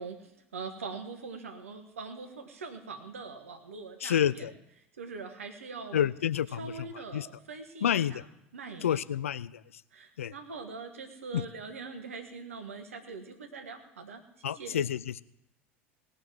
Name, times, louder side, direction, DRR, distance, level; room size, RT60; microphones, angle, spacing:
voice 1, 0.0-4.5 5.0-6.0 6.5-8.2 8.5-9.0 9.9-14.2 14.5-14.8, right 4 dB, 80° right, 7 dB, 1.5 m, -42 dB
voice 2, 4.0-4.5 5.9-6.7 7.1-7.3 7.8-8.2 8.8-9.5 10.2-10.3 11.3-11.4 14.4-15.2, left 9 dB, 75° left, 18 dB, 0.4 m, -28 dB
18.5 x 6.4 x 7.6 m, 0.83 s
figure-of-eight pair, 75°, 7 cm